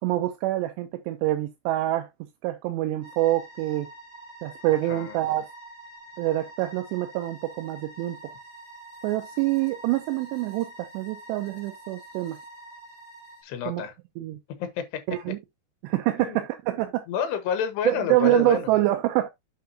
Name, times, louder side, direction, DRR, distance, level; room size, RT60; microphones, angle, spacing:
voice 1, 0.0-2.1 2.4-3.9 4.4-5.5 6.2-8.3 9.0-12.4 13.7-13.8 14.2-14.4 15.1-15.4 15.8-17.0 17.9-19.3, right 16 dB, 85° right, 2.9 m, -26 dB
sound 1, 3.0-13.4, right 1 dB, 30° right, 2.9 m, -46 dB
voice 2, 4.9-5.2 13.4-13.9 14.6-15.0 16.2-16.4 17.1-18.7, left 8 dB, 75° left, 3.4 m, -29 dB
9.5 x 5.7 x 2.8 m
omnidirectional pair, 4.9 m